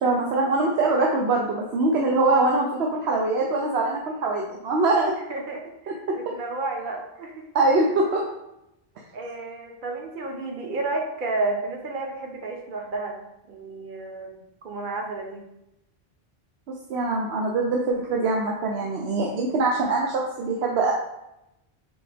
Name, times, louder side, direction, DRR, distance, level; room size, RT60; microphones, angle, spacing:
voice 1, 0.0-5.1 5.9-6.2 7.5-8.2 16.9-20.9, right 3 dB, 85° right, -1 dB, 0.9 m, -23 dB
voice 2, 5.3-5.6 6.1-7.4 9.1-13.2 13.5-15.4, right 3 dB, 55° right, 2 dB, 0.9 m, -31 dB
4.1 x 3.8 x 3.4 m, 0.88 s
omnidirectional pair, 1.0 m